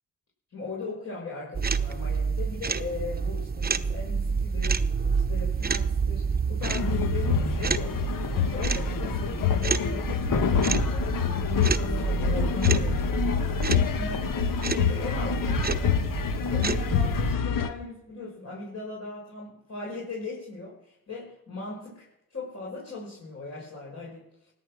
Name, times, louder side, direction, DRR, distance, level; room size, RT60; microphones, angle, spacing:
voice 1, 0.5-4.8 5.3-8.0 8.3-16.0 16.4-24.5, left 3 dB, 45° left, -5 dB, 6.1 m, -39 dB
sound 1, 1.5-17.4, right 5 dB, 25° right, 0.9 m, -29 dB
sound 2, 6.6-17.7, left 8 dB, 70° left, 1.3 m, -27 dB
17.5 x 10.0 x 6.2 m, 0.80 s
cardioid pair, 60°, 35 cm